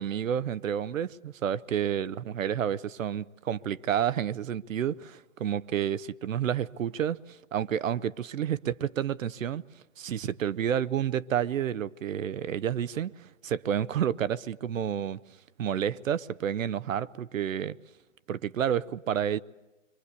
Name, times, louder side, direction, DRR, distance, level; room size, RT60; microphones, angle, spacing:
voice 1, 0.0-9.6 10.0-13.1 13.4-15.2 15.6-17.8 18.3-19.4, right 9 dB, 80° right, 0.9 m, -30 dB
25.5 x 23.5 x 8.2 m
hypercardioid pair, 130°, 39 cm